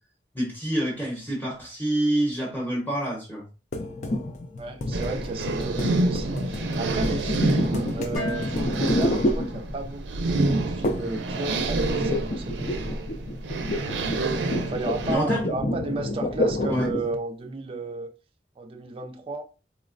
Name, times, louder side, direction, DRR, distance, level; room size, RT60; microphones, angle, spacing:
voice 1, 0.3-3.4 15.1-15.5 16.7-16.9, right 1 dB, 10° left, 0.8 m, -27 dB
sound 1, 3.7-10.0 10.8-11.2 11.5-17.2, left 1 dB, 45° left, 0.5 m, -29 dB
voice 2, 4.6-12.9 14.7-18.1 18.6-19.4, right 3 dB, 30° right, 0.4 m, -33 dB
sound 2, 4.9-15.2, right 2 dB, 90° right, 0.5 m, -28 dB
Dishes pots and pans, 8.2-10.2, left 1 dB, 75° left, 1.5 m, -38 dB
4.1 x 2.1 x 2.5 m
head